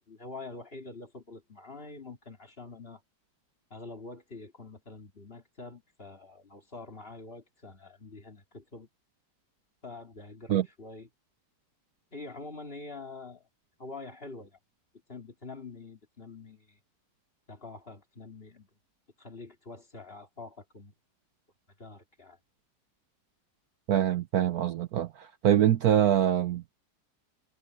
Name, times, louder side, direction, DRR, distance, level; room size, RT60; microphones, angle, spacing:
voice 1, 0.1-3.0 3.7-8.9 9.8-11.1 12.1-13.5 13.8-14.6 15.1-16.8 17.5-18.7 19.2-20.9 21.8-22.4, left 3 dB, 30° left, 3.0 m, -45 dB
voice 2, 23.9-26.6, right 10 dB, 65° right, 1.1 m, -24 dB
omnidirectional pair, 1.9 m